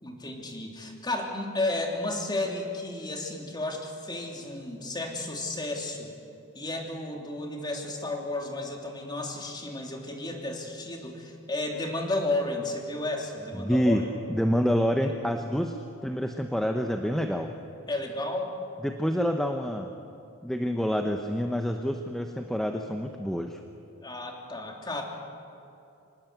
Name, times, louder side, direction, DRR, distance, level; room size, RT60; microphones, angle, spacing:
voice 1, 0.0-6.1 6.5-14.1 17.9-18.5 24.0-25.0, left 2 dB, 20° left, 1 dB, 3.1 m, -33 dB
voice 2, 13.5-14.0 14.3-15.7 16.0-17.5 18.8-19.9 20.4-23.6, equal, ahead, 4 dB, 0.9 m, -27 dB
25.5 x 19.5 x 8.1 m, 2.7 s
head